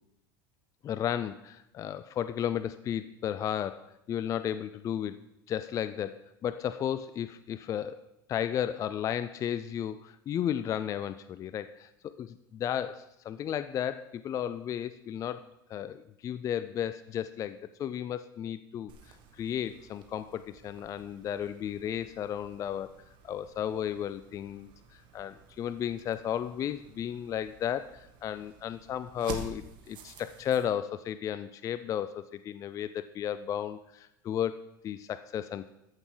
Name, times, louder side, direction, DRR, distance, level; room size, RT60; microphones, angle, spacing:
voice 1, 0.8-5.2 5.5-8.0 8.3-22.9 23.2-35.7, left 9 dB, 30° left, 13 dB, 0.3 m, -34 dB
sound 1, 18.9-30.7, right 5 dB, 45° right, 1.4 m, -49 dB
14.0 x 6.1 x 3.8 m, 0.86 s
supercardioid pair, 115°, 11 cm